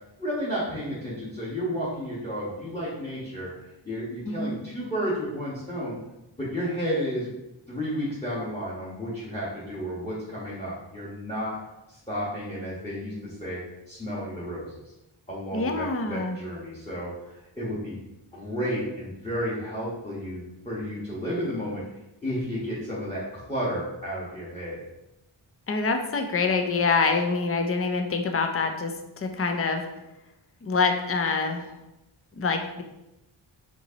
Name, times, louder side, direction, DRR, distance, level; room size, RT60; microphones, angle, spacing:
voice 1, 0.2-6.0 6.4-7.3 7.7-11.6 11.9-13.6 13.9-14.9 15.3-17.1 17.5-18.0 18.3-21.8 22.2-24.8, equal, 15° left, -8 dB, 1.4 m, -32 dB
voice 2, 4.2-4.6 15.5-16.4 25.7-29.8 30.6-31.7 32.4-32.8, left 4 dB, 30° left, 5 dB, 0.6 m, -26 dB
4.4 x 4.1 x 2.8 m, 0.94 s
cardioid pair, 50°, 48 cm